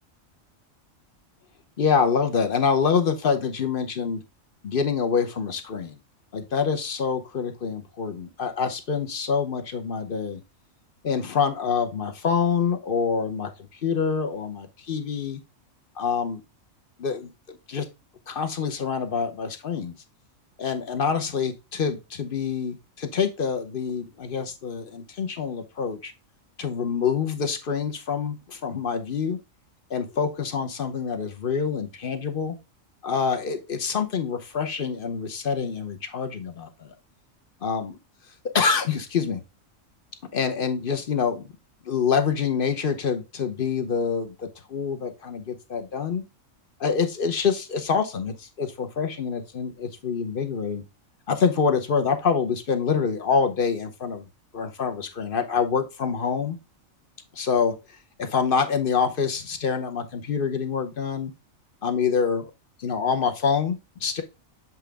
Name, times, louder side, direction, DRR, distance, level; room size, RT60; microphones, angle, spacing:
voice 1, 1.8-4.2 4.6-6.0 6.3-10.4 11.0-15.4 16.0-16.4 17.0-17.9 18.3-19.9 20.6-26.1 26.6-29.4 29.9-32.6 33.0-36.9 37.6-38.0 38.5-39.4 40.3-41.4 41.8-46.2 46.8-50.8 51.3-54.3 54.5-56.6 57.3-57.8 58.2-61.3 61.8-62.5 62.8-64.2, left 6 dB, 45° left, 7 dB, 1.0 m, -26 dB
7.6 x 3.7 x 3.3 m, 0.26 s
omnidirectional pair, 1.4 m